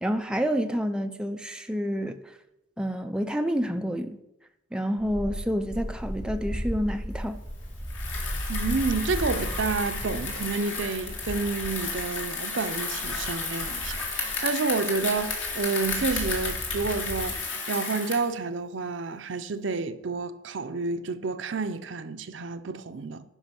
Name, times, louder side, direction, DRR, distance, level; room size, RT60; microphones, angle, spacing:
voice 1, 0.0-2.3 2.8-4.2 4.7-7.4, equal, 5° right, 0.4 m, -28 dB
sound 1, 5.0-17.3, equal, 30° right, 4.2 m, -36 dB
Bicycle, 7.8-18.3, left 4 dB, 80° left, 2.3 m, -33 dB
voice 2, 8.5-17.4 17.7-23.2, right 4 dB, 70° right, 0.6 m, -29 dB
10.0 x 5.2 x 5.9 m
head